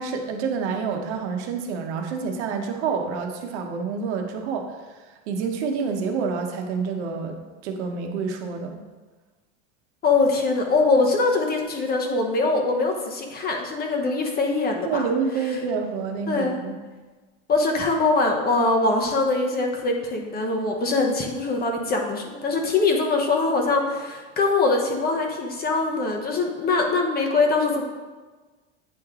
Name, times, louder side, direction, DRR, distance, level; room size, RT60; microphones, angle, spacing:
voice 1, 0.0-8.8 14.8-16.7, right 5 dB, 70° right, 3 dB, 1.0 m, -28 dB
voice 2, 10.0-15.1 16.3-16.6 17.5-27.8, left 3 dB, 25° left, 2 dB, 0.9 m, -22 dB
8.9 x 3.2 x 3.6 m, 1.3 s
supercardioid pair, 125°, 35 cm